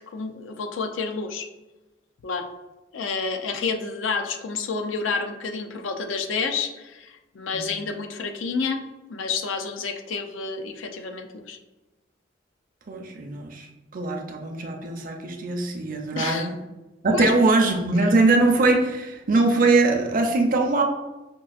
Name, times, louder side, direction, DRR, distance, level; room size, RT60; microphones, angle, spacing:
voice 1, 0.0-1.5 2.2-2.5 2.9-8.8 9.1-11.6 16.1-16.5 17.1-17.3, left 4 dB, 85° left, 6 dB, 0.4 m, -29 dB
voice 2, 12.9-13.7 13.9-16.6 17.0-20.8, right 3 dB, 45° right, 3 dB, 0.5 m, -22 dB
5.3 x 2.3 x 2.4 m, 1.1 s
head